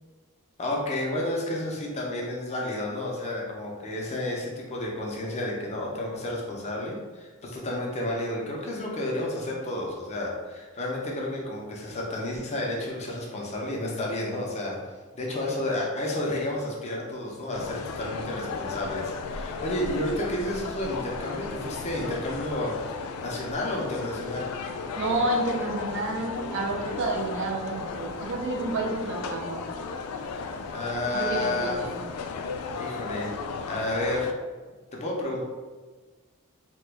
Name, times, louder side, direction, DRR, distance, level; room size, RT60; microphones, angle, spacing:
voice 1, 0.6-14.8 15.1-24.5 30.7-31.8 32.8-33.3 33.7-34.3 34.9-35.4, left 1 dB, 30° left, -2 dB, 0.6 m, -31 dB
sound 1, 17.5-34.3, left 4 dB, 90° left, 0.3 m, -35 dB
voice 2, 24.9-29.7 31.1-32.0, right 2 dB, 55° right, 1 dB, 0.5 m, -30 dB
2.9 x 2.2 x 3.3 m, 1.4 s
head